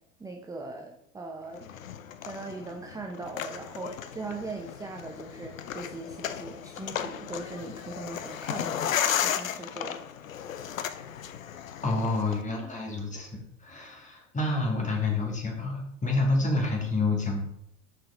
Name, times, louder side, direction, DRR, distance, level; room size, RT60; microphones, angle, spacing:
voice 1, 0.2-1.7 2.2-10.0, right 3 dB, 10° right, 2 dB, 0.8 m, -40 dB
sound 1, 1.6-12.4, left 9 dB, 90° left, 0.7 m, -34 dB
voice 2, 11.8-17.4, left 2 dB, 20° left, 0 dB, 2.4 m, -28 dB
5.9 x 5.1 x 5.1 m, 0.75 s
hypercardioid pair, 95°, 39 cm